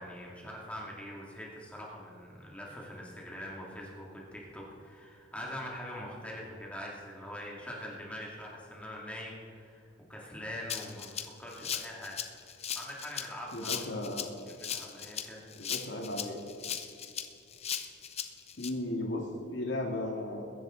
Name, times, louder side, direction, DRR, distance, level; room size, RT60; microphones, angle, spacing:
voice 1, 0.0-12.1 12.4-13.8 14.6-15.7, left 1 dB, 5° left, -3 dB, 2.3 m, -43 dB
Rattle (instrument), 10.7-18.7, left 8 dB, 35° left, 0.8 m, -38 dB
voice 2, 13.5-14.3 15.6-16.3 18.6-20.4, left 1 dB, 75° left, 0 dB, 2.0 m, -35 dB
22.0 x 10.5 x 3.8 m, 2.6 s
head